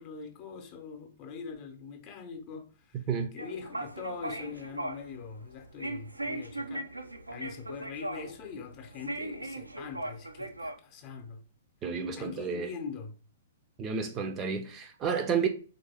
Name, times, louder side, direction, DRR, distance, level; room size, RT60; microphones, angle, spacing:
voice 1, 0.0-3.1 3.3-6.9 7.3-11.4 12.2-13.2, left 5 dB, 35° left, 0.7 m, -43 dB
voice 2, 2.9-3.3 11.8-12.7 13.8-15.5, right 6 dB, 25° right, 0.5 m, -31 dB
sound 1, 3.4-10.7, right 1 dB, 85° right, 0.4 m, -39 dB
3.5 x 2.6 x 3.4 m
figure-of-eight pair, 115°, 0 cm